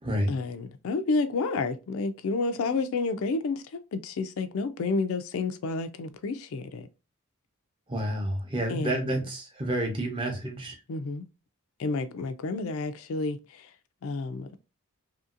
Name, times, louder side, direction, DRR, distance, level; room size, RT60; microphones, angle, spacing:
voice 1, 0.3-6.9 8.7-9.1 10.9-11.3 11.8-13.7 14.0-14.5, left 3 dB, 70° left, 0.4 m, -30 dB
voice 2, 7.9-10.7, right 1 dB, 25° right, 0.8 m, -29 dB
2.8 x 2.7 x 2.4 m
head